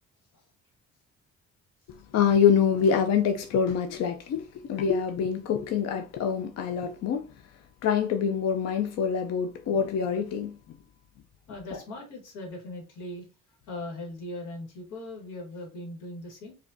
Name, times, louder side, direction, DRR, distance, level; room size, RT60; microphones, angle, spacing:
voice 1, 2.1-7.3 7.8-10.8, left 7 dB, 60° left, 0.5 m, -25 dB
voice 2, 11.5-13.3 13.7-16.6, left 1 dB, 90° left, 1.4 m, -39 dB
4.9 x 2.2 x 2.6 m
cardioid pair, 90°, 30 cm